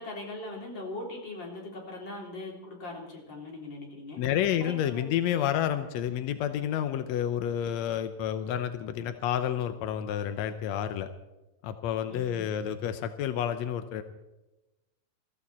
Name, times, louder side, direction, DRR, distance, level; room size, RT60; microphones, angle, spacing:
voice 1, 0.0-4.2 4.6-5.1 12.1-12.4, left 2 dB, 30° left, -1 dB, 4.0 m, -40 dB
voice 2, 4.2-11.1 11.6-14.0, left 10 dB, 80° left, 9 dB, 1.6 m, -30 dB
22.5 x 15.0 x 4.3 m, 1.0 s
omnidirectional pair, 4.1 m